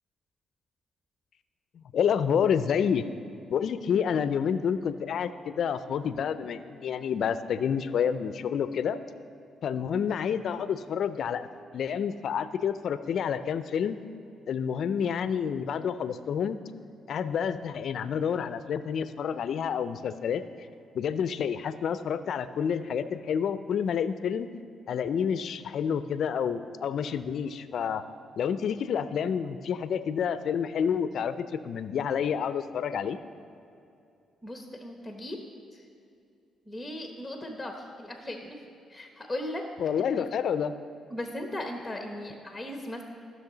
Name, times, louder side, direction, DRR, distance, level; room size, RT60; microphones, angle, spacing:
voice 1, 1.8-3.0 3.5-9.0 9.6-11.5 11.7-14.0 14.5-16.6 17.1-20.4 20.9-24.5 24.9-28.0 28.4-33.2 39.8-40.7, left 7 dB, 65° left, 13 dB, 0.4 m, -29 dB
voice 2, 34.4-35.4 35.7-35.8 36.7-38.6 38.9-39.6 40.0-40.1 41.1-43.0, left 1 dB, 5° left, 3 dB, 1.0 m, -37 dB
14.5 x 6.2 x 3.9 m, 2.6 s
cardioid pair, 90°, 0 cm